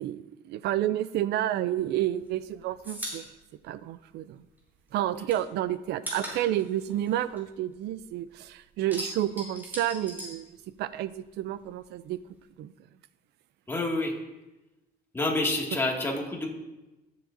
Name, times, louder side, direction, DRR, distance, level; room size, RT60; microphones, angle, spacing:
voice 1, 0.0-3.3 3.6-4.4 4.9-10.5 10.8-12.2 12.6-12.7, right 12 dB, 75° right, 15 dB, 0.5 m, -30 dB
sound 1, 1.8-4.6 4.9-8.2 8.5-11.1 11.4-12.5, equal, 10° right, 3.3 m, -41 dB
voice 2, 13.7-14.1 15.1-16.5, left 2 dB, 15° left, -1 dB, 2.2 m, -28 dB
18.5 x 7.5 x 2.7 m, 1.0 s
cardioid pair, 110°, 17 cm